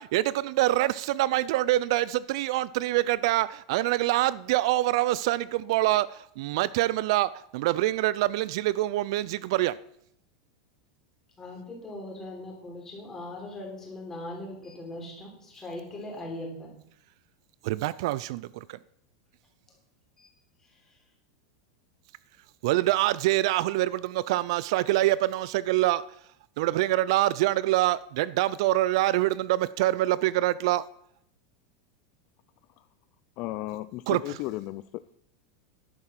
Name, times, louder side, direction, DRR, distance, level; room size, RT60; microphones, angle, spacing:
voice 1, 0.0-6.1 6.4-9.7 17.6-18.8 22.6-26.0 26.6-30.8 34.1-34.2, right 16 dB, 60° right, 0.4 m, -25 dB
voice 2, 11.4-16.8 20.2-20.3 20.6-21.0, left 1 dB, 15° left, 3.7 m, -40 dB
voice 3, 33.4-35.2, left 17 dB, 40° left, 0.4 m, -35 dB
11.0 x 8.7 x 5.8 m
supercardioid pair, 160°, 3 cm